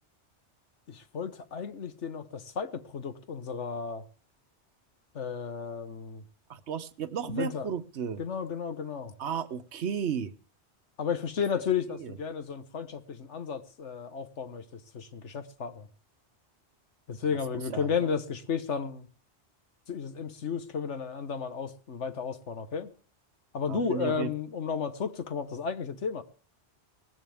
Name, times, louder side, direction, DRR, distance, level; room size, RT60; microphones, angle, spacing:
voice 1, 0.9-4.1 5.1-6.2 7.3-7.7 8.2-9.1 11.0-15.9 17.1-19.1 19.9-22.9 23.5-26.2, left 6 dB, 80° left, 1.5 m, -33 dB
voice 2, 6.5-8.2 9.2-10.3 12.0-12.1 17.7-17.9 23.7-24.3, right 7 dB, 70° right, 1.2 m, -33 dB
18.5 x 15.5 x 3.5 m
omnidirectional pair, 1.2 m